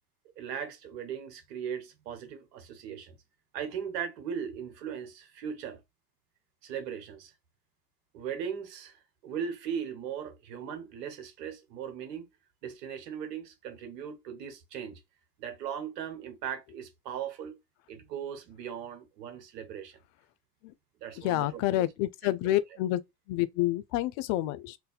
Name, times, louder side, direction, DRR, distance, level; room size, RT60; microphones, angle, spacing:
voice 1, 0.4-3.2 3.5-5.8 6.6-7.3 8.1-12.3 12.6-15.0 15.4-17.6 17.9-20.0 21.0-21.9 22.2-22.3, right 8 dB, 85° right, 1.1 m, -38 dB
voice 2, 21.2-23.0 23.3-24.8, left 15 dB, 60° left, 0.5 m, -28 dB
2.6 x 2.2 x 4.0 m
hypercardioid pair, 85°, 48 cm